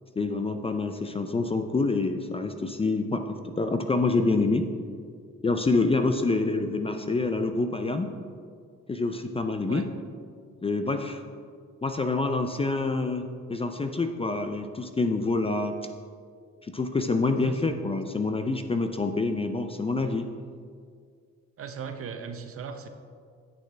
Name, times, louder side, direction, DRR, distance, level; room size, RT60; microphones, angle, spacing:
voice 1, 0.2-4.7 5.4-8.1 8.9-9.9 10.6-11.2 11.8-15.8 16.6-20.3, left 3 dB, 20° left, 7 dB, 0.4 m, -27 dB
voice 2, 17.5-17.8 21.6-22.9, right 6 dB, 50° right, 7 dB, 0.7 m, -38 dB
9.6 x 6.5 x 3.3 m, 2.1 s
cardioid pair, 90°, 30 cm